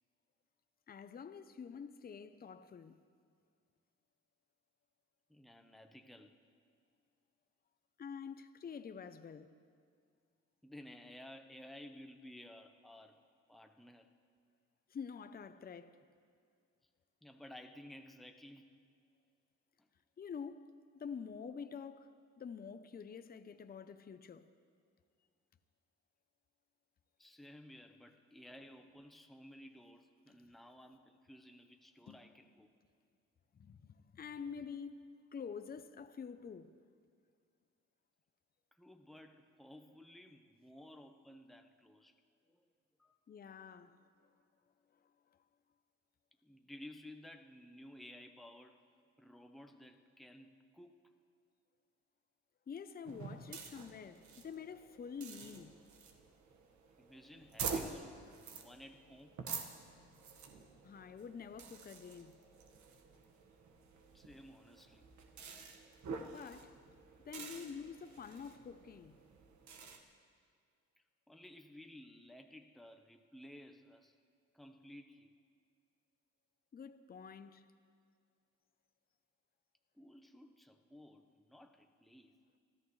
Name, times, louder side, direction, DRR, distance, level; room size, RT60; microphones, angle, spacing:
voice 1, 0.9-3.0 8.0-9.5 14.9-16.0 20.2-20.7 20.9-24.5 32.1-32.2 33.5-35.0 35.3-36.7 43.3-44.0 52.7-55.8 60.8-62.3 66.3-66.8 67.3-69.2 76.7-77.6, left 6 dB, 30° left, 0.6 m, -47 dB
voice 2, 5.3-6.4 10.6-13.2 13.5-14.1 17.2-18.9 19.8-19.9 27.2-32.7 38.7-42.1 42.5-42.7 43.0-43.2 46.4-48.8 49.2-51.0 57.0-59.4 64.1-65.0 71.0-74.1 74.5-75.3 79.9-82.3, left 1 dB, ahead, 0.9 m, -55 dB
sound 1, 53.0-70.0, right 5 dB, 70° right, 1.6 m, -48 dB
24.5 x 14.0 x 3.2 m
cardioid pair, 90°, 30 cm